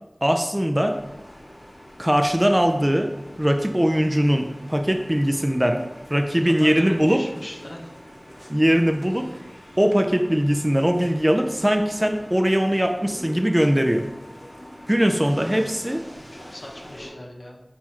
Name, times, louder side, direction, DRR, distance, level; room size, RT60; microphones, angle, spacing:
voice 1, 0.2-1.0 2.0-3.1 3.4-5.8 6.1-7.2 8.5-9.3 9.8-14.0 14.9-16.0, equal, 15° right, 5 dB, 0.3 m, -20 dB
sound 1, 0.8-17.1, equal, 20° left, 1.0 m, -44 dB
voice 2, 6.4-7.9 16.1-17.6, left 1 dB, 55° left, -1 dB, 0.7 m, -39 dB
4.4 x 2.4 x 4.2 m, 0.96 s
wide cardioid pair, 50°, 0 cm